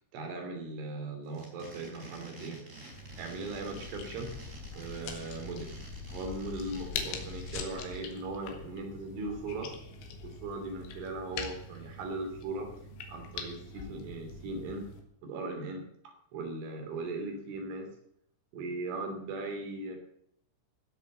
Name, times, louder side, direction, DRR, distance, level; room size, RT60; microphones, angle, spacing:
voice 1, 0.1-2.6 3.2-4.3 4.8-5.7 6.1-9.8 10.2-12.7 13.1-15.0 15.2-17.9 18.5-20.0, right 2 dB, 75° right, 3 dB, 5.5 m, -38 dB
sound 1, 1.2-8.0, right 2 dB, 15° right, 3.6 m, -50 dB
sound 2, 2.9-15.0, left 5 dB, 75° left, 4.2 m, -43 dB
17.0 x 8.2 x 8.0 m, 0.72 s
omnidirectional pair, 5.6 m